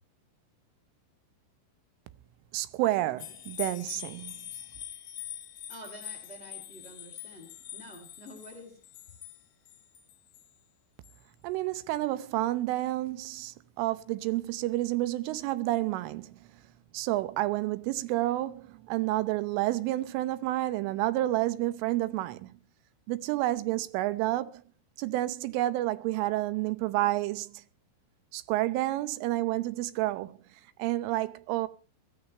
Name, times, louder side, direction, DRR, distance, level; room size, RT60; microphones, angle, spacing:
voice 1, 2.5-4.4 11.4-16.4 16.9-22.5 23.1-24.6 25.0-27.6 28.3-30.4 30.8-31.7, right 16 dB, 85° right, 3.4 m, -30 dB
sound 1, 3.2-10.5 11.0-11.1, left 12 dB, 75° left, 1.9 m, -44 dB
voice 2, 5.7-8.8, equal, 25° left, 1.3 m, -48 dB
22.0 x 14.5 x 3.2 m
omnidirectional pair, 5.6 m